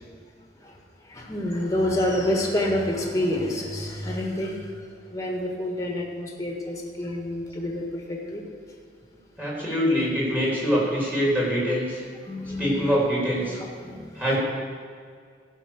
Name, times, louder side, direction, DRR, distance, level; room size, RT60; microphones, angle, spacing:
voice 1, 1.1-4.7 5.1-8.4 12.2-12.9 13.6-14.2, left 1 dB, 20° left, 0 dB, 1.8 m, -28 dB
voice 2, 9.4-12.0 12.6-13.6 14.2-14.4, equal, 10° right, -5 dB, 3.5 m, -24 dB
14.5 x 5.7 x 6.5 m, 2.1 s
head